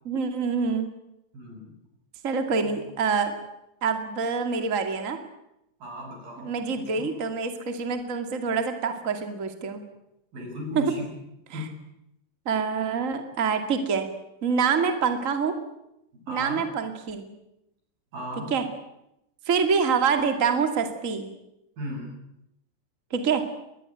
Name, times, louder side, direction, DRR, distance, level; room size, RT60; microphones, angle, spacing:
voice 1, 0.1-0.9 2.2-3.3 3.8-5.2 6.4-9.8 10.7-10.9 11.5-11.6 12.5-14.1 14.4-15.5 16.3-17.3 18.5-18.6 19.5-21.3 23.1-23.4, right 5 dB, 25° right, 7 dB, 2.1 m, -26 dB
voice 2, 1.3-1.7 2.6-2.8 5.8-7.1 10.3-11.1 11.5-11.7 16.1-16.7 18.1-18.5 21.8-22.2, left 1 dB, 90° right, 1 dB, 9.4 m, -36 dB
22.0 x 20.5 x 9.2 m, 0.86 s
omnidirectional pair, 4.0 m